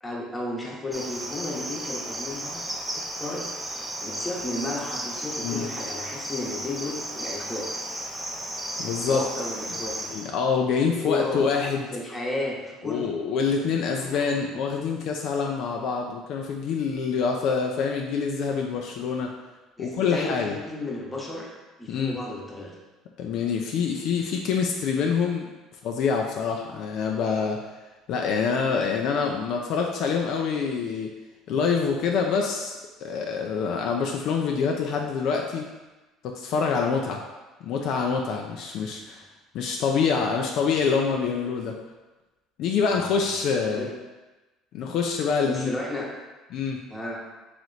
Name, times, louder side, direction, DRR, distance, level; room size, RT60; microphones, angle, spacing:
voice 1, 0.0-2.6 2.9-3.5 4.0-7.7 9.1-10.3 11.0-11.4 11.9-13.1 14.0-14.4 19.8-21.5 21.8-22.8 38.8-39.2 43.5-43.9 45.4-46.1 46.9-47.2, left 2 dB, 15° left, -2 dB, 0.9 m, -33 dB
Cricket, 0.9-10.3, right 1 dB, 10° right, 0.5 m, -34 dB
voice 2, 8.8-9.3 9.8-11.9 12.8-19.3 19.8-20.5 21.9-22.2 23.2-25.5 25.8-27.6 28.1-31.1 31.5-35.7 36.2-37.2 37.6-39.3 39.5-41.8 42.6-43.9 44.7-45.7 46.5-46.8, left 5 dB, 65° left, 1 dB, 0.4 m, -26 dB
3.2 x 2.9 x 3.9 m, 1.2 s
supercardioid pair, 100°, 0 cm